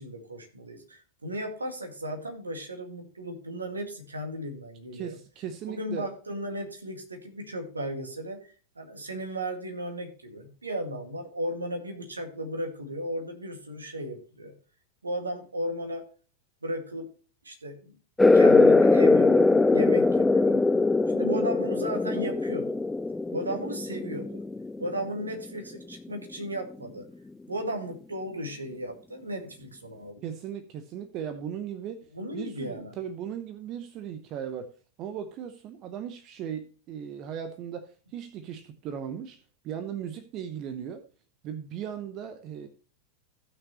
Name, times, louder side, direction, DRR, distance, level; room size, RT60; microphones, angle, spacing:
voice 1, 0.0-5.2 5.7-8.4 8.8-14.5 15.0-16.0 16.6-17.1 17.4-17.9 18.3-22.8 23.3-24.4 24.8-27.1 27.5-30.2 32.1-33.0, right 1 dB, 80° right, 2.0 m, -35 dB
voice 2, 4.9-6.1 30.2-32.0 32.3-34.7 35.0-39.4 39.6-41.0 41.4-42.7, right 8 dB, 35° right, 0.8 m, -37 dB
sound 1, 18.2-25.3, left 3 dB, 10° left, 0.3 m, -21 dB
15.5 x 6.0 x 3.0 m
figure-of-eight pair, 90°, 0 cm